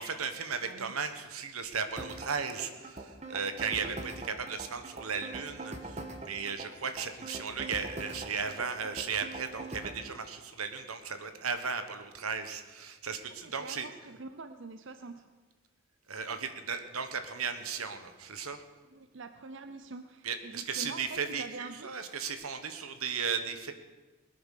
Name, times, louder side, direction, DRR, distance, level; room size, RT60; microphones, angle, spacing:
voice 1, 0.0-13.9 16.1-18.6 20.2-23.7, right 5 dB, 90° right, 8 dB, 1.4 m, -36 dB
voice 2, 0.6-1.0 3.7-4.0 13.4-15.3 18.9-21.9, right 3 dB, 60° right, 10 dB, 0.6 m, -45 dB
sound 1, 2.0-10.0, right 2 dB, 30° right, 1.5 m, -42 dB
20.0 x 9.2 x 6.6 m, 1.2 s
head